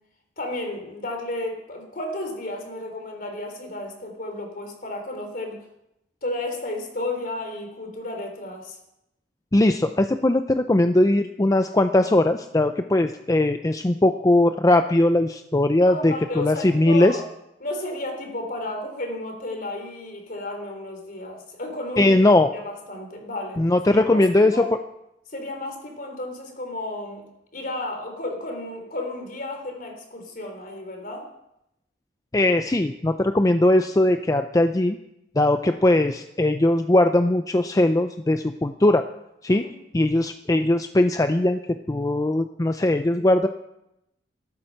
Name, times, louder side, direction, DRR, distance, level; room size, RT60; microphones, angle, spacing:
voice 1, 0.4-5.6 6.2-8.8 15.8-17.3 17.6-22.2 22.5-24.7 25.3-31.3 39.5-39.8, left 2 dB, 55° left, 4 dB, 3.6 m, -33 dB
voice 2, 9.5-17.2 22.0-22.5 23.6-24.5 32.3-35.0 35.4-39.1 39.4-39.7 39.9-43.5, left 1 dB, 20° left, 8 dB, 0.5 m, -20 dB
13.5 x 13.0 x 6.5 m, 0.84 s
head